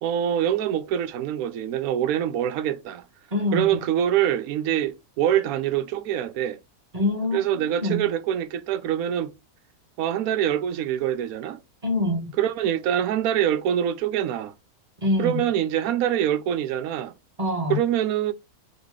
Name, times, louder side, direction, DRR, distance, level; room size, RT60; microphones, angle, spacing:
voice 1, 0.0-3.0 3.5-6.6 7.3-9.3 10.0-11.6 12.4-14.5 15.2-17.1 17.7-18.3, right 10 dB, 75° right, 1.0 m, -25 dB
voice 2, 3.3-3.7 6.9-8.0 11.8-12.3 15.0-15.4 17.4-17.8, left 1 dB, 25° right, 1.6 m, -25 dB
4.0 x 3.0 x 3.4 m
omnidirectional pair, 1.6 m